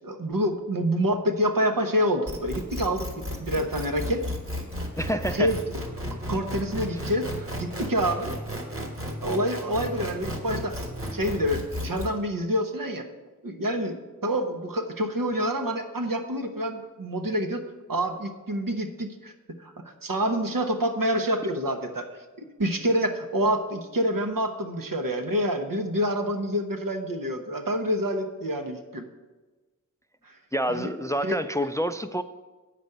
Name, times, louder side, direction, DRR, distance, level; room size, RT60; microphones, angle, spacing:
voice 1, 0.0-3.1 3.4-4.2 5.1-5.6 6.3-8.3 9.2-10.8 11.1-13.1 13.4-17.6 17.9-19.3 19.6-19.7 20.0-22.1 22.4-29.1 30.2-30.4 30.7-30.9 31.2-31.4, equal, 80° right, 5 dB, 1.0 m, -27 dB
sound 1, 2.3-12.1, equal, 40° right, 1.4 m, -34 dB
voice 2, 5.0-5.5 30.5-32.2, equal, 10° left, 11 dB, 0.3 m, -27 dB
8.4 x 5.1 x 6.6 m, 1.3 s
wide cardioid pair, 45°, 33 cm